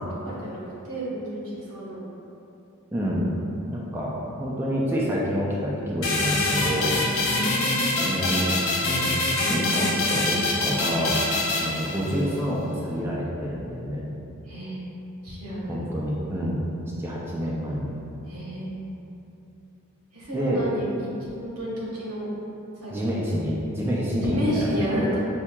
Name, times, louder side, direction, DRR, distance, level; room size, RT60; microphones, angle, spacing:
voice 1, 0.2-2.0 7.2-8.1 14.5-14.8 15.2-15.8 18.3-18.8 20.1-21.1 21.4-22.3 22.8-23.0 24.2-25.2, right 1 dB, 85° right, -7 dB, 1.2 m, -31 dB
voice 2, 2.9-3.3 3.7-4.1 4.4-7.0 8.0-8.6 8.8-11.1 11.6-14.1 15.7-16.6 17.0-17.9 20.3-20.6 22.9-25.0, equal, 10° right, -5 dB, 0.3 m, -28 dB
sound 1, 6.0-12.4, left 2 dB, 65° left, 0.6 m, -25 dB
5.6 x 2.7 x 2.2 m, 2.8 s
head